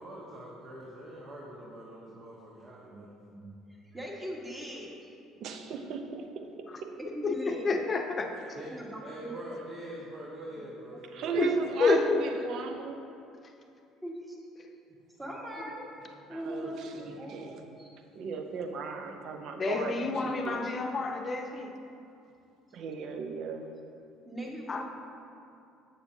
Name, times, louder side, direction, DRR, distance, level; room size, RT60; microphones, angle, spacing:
voice 1, 0.0-3.1 8.5-11.7, equal, 45° right, -4 dB, 1.1 m, -44 dB
voice 2, 2.9-3.5 3.9-5.0 6.9-7.8 8.6-9.4 10.9-11.0 11.4-11.5 14.0-14.4 15.2-15.9 16.2-17.9 19.0-19.1 24.2-24.8, equal, 15° right, -3 dB, 1.5 m, -40 dB
voice 3, 5.4-6.9 11.1-13.0 16.3-17.5 18.2-20.6 22.7-23.8, right 5 dB, 60° right, 5 dB, 0.6 m, -36 dB
voice 4, 7.2-8.3 11.3-11.5 11.8-12.3 14.6-14.7 15.6-15.7 19.6-21.7 24.7-24.8, left 3 dB, 35° left, 4 dB, 0.7 m, -29 dB
7.4 x 6.8 x 2.7 m, 2.6 s
hypercardioid pair, 65°, 0 cm